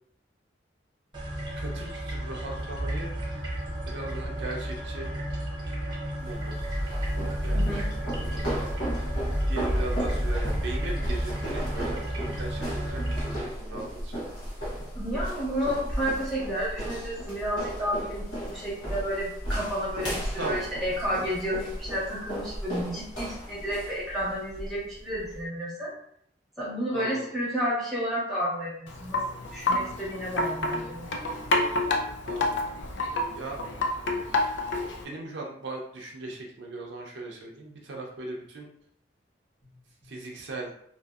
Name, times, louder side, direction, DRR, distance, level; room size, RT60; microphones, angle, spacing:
sound 1, 1.1-13.4, equal, 25° right, 0.6 m, -31 dB
voice 1, 1.6-3.1 3.8-5.1 6.2-6.6 7.4-7.8 8.1-8.7 9.5-14.4 20.4-20.7 26.9-27.3 32.2-32.6 33.0-33.1 33.3-33.6 34.2-34.5 35.0-38.7 40.0-40.7, right 2 dB, 70° right, -1 dB, 0.5 m, -38 dB
sound 2, 6.2-25.4, equal, 90° left, 1.0 m, -35 dB
voice 2, 7.5-7.9 14.9-25.9 26.6-29.2 29.5-31.1, equal, ahead, -7 dB, 1.0 m, -31 dB
Wind chime, 28.9-35.1, left 2 dB, 75° left, 0.4 m, -29 dB
2.7 x 2.6 x 2.3 m, 0.68 s
head